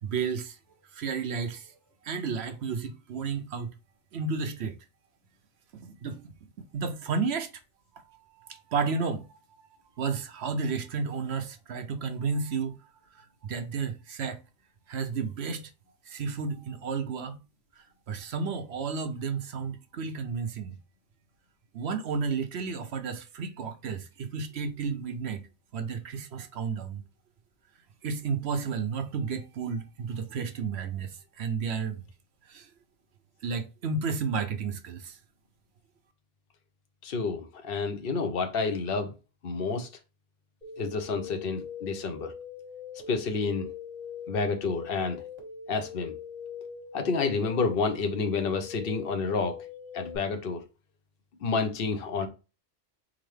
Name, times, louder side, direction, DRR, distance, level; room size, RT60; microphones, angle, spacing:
voice 1, 0.0-0.6 0.9-1.8 2.0-3.7 4.1-4.8 5.7-6.3 6.7-7.5 8.1-9.3 10.0-12.8 13.1-14.4 14.9-15.7 16.1-17.4 17.8-20.8 21.7-25.4 25.7-27.0 28.0-32.0 32.5-32.7 33.4-35.2, right 5 dB, 65° right, 0.8 m, -32 dB
voice 2, 37.0-39.1 39.4-39.9 40.8-42.3 43.1-43.7 44.3-45.2 45.7-46.1 46.9-49.6 49.9-50.6 51.4-52.3, left 4 dB, 50° left, 1.0 m, -29 dB
sound 1, 40.6-50.2, left 6 dB, 30° right, 1.9 m, -42 dB
4.3 x 3.9 x 3.2 m
omnidirectional pair, 1.3 m